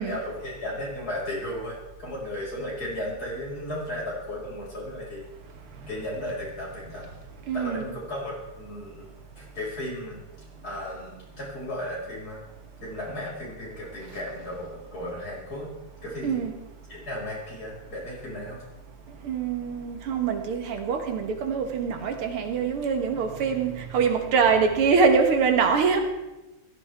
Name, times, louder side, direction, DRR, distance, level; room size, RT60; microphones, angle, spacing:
voice 1, 0.0-5.3 5.9-7.0 7.5-9.1 9.4-10.2 10.6-12.4 12.8-15.7 16.0-16.4 16.9-18.6, left 1 dB, 45° left, -5 dB, 5.8 m, -35 dB
voice 2, 7.5-7.8 16.2-16.5 19.2-26.1, right 5 dB, 85° right, 5 dB, 2.2 m, -24 dB
16.0 x 14.0 x 3.5 m, 1.0 s
omnidirectional pair, 2.4 m